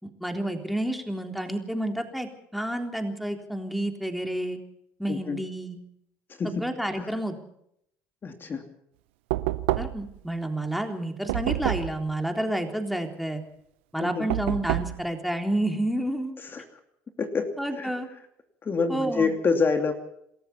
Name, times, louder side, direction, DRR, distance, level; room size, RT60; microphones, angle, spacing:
voice 1, 0.0-4.6 5.0-5.8 6.4-7.4 9.8-13.4 13.9-16.4 17.6-18.1 18.9-19.3, right 1 dB, ahead, 5 dB, 3.6 m, -30 dB
voice 2, 5.1-5.4 6.4-6.6 7.0-7.1 8.2-8.6 14.0-14.3 16.4-16.6 17.2-17.5 17.7-17.9 18.6-19.9, left 4 dB, 35° left, 6 dB, 2.7 m, -27 dB
Knock, 9.3-10.2 11.3-12.0 14.3-15.0, right 17 dB, 80° right, 0.9 m, -28 dB
26.5 x 14.0 x 7.0 m, 0.74 s
hypercardioid pair, 70°, 6 cm